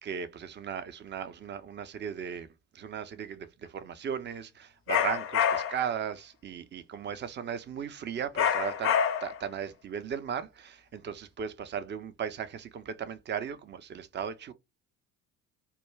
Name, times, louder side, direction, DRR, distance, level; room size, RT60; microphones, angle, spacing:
voice 1, 0.0-2.5 2.7-14.5, right 8 dB, 25° right, 0.4 m, -37 dB
sound 1, 4.9-5.9 8.4-9.5, left 8 dB, 30° left, 0.4 m, -27 dB
2.2 x 2.2 x 3.1 m
hypercardioid pair, 50°, 44 cm